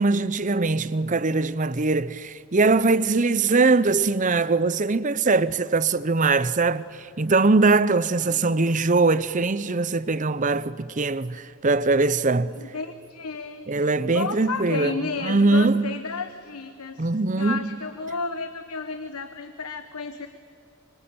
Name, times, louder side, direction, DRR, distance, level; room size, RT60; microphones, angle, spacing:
voice 1, 0.0-12.5 13.7-15.9 17.0-17.6, right 3 dB, 35° right, 0.7 m, -22 dB
voice 2, 8.2-8.7 12.6-20.3, left 4 dB, 90° left, 1.2 m, -33 dB
25.5 x 25.5 x 8.7 m
head